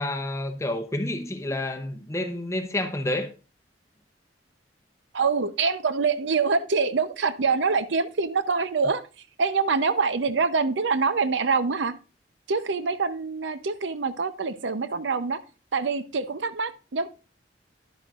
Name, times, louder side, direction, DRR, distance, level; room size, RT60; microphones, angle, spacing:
voice 1, 0.0-3.3, left 1 dB, 15° left, 0.7 m, -29 dB
voice 2, 5.1-9.0 9.4-11.9 12.5-15.4 15.7-17.1, right 4 dB, 80° right, 0.7 m, -25 dB
10.5 x 8.5 x 2.4 m
head